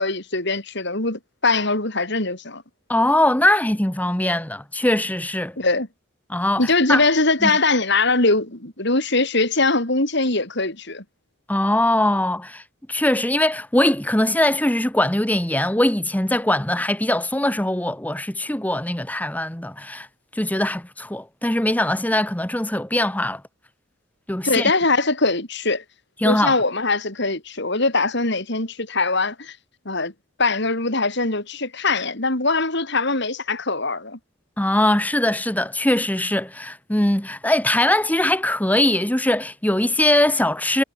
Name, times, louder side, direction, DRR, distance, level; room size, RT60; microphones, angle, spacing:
voice 1, 0.0-2.6 5.6-5.9 6.6-11.0 24.4-25.8 26.2-29.6 29.8-30.1 30.4-34.2, left 3 dB, 55° left, 4.6 m, -22 dB
voice 2, 2.9-5.6 6.3-7.0 7.4-7.5 11.5-12.6 12.9-20.1 20.3-23.4 24.3-24.7 26.2-26.6 34.6-40.8, left 1 dB, 10° left, 1.1 m, -21 dB
head